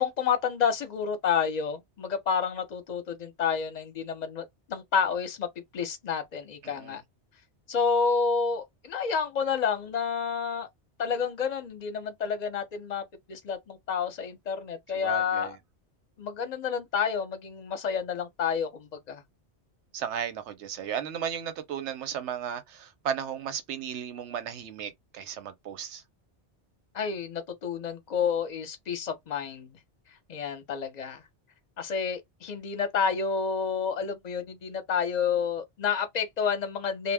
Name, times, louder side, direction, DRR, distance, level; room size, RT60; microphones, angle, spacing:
voice 1, 0.0-5.5 5.7-7.0 7.7-10.7 11.0-15.6 16.2-19.2 26.9-29.7 30.3-31.2 31.8-37.1, left 6 dB, 45° left, 0.6 m, -29 dB
voice 2, 6.6-7.0 14.9-15.6 19.9-26.0, right 8 dB, 85° right, 0.9 m, -35 dB
2.1 x 2.0 x 3.3 m
omnidirectional pair, 1.2 m